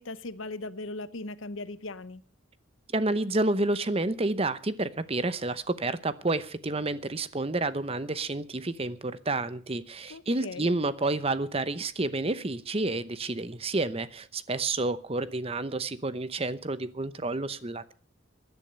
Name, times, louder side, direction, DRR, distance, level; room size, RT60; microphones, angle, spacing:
voice 1, 0.0-2.2 10.1-10.7, left 2 dB, 70° left, 15 dB, 0.9 m, -38 dB
voice 2, 2.9-17.9, right 2 dB, 30° right, 14 dB, 0.8 m, -30 dB
15.5 x 10.5 x 6.7 m, 0.41 s
head